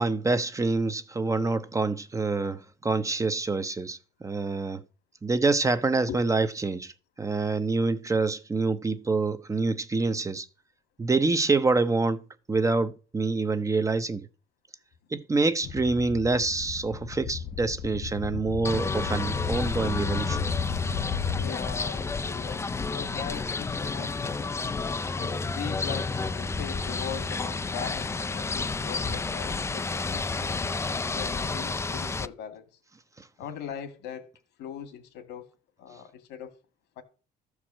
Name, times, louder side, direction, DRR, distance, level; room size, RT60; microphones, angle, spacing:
voice 1, 0.0-4.8 5.2-6.9 7.2-10.5 11.0-12.2 12.5-14.3 15.1-20.4, right 3 dB, 20° right, 0.8 m, -26 dB
sound 1, 15.6-21.5, left 8 dB, 70° left, 0.8 m, -34 dB
sound 2, 18.6-32.3, left 3 dB, 15° left, 0.4 m, -31 dB
voice 2, 21.3-24.5 25.1-32.6 33.4-34.3 34.6-35.4 35.8-36.5 37.0-37.1, left 8 dB, 85° left, 2.1 m, -40 dB
13.0 x 4.8 x 7.4 m
cardioid pair, 110°, 17 cm